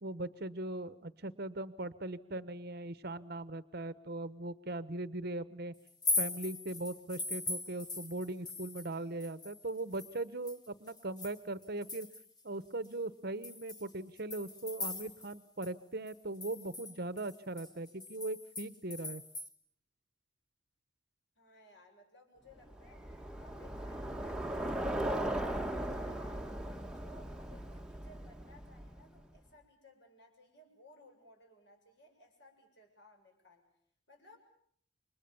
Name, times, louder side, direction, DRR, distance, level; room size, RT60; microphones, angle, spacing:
voice 1, 0.0-5.7 6.2-12.1 12.4-19.2, right 2 dB, 50° right, 15 dB, 1.1 m, -40 dB
sound 1, 5.9-8.9 9.2-12.4 12.8-12.9 13.4-15.4 15.6-15.7 16.1-19.5, left 3 dB, 20° left, 1.9 m, -40 dB
voice 2, 21.4-26.6 26.8-33.6 34.1-34.4, left 1 dB, 55° left, 3 dB, 7.2 m, -60 dB
Bicycle, 22.7-29.2, right 1 dB, 5° right, 1.3 m, -38 dB
30.0 x 25.0 x 7.1 m, 0.66 s
head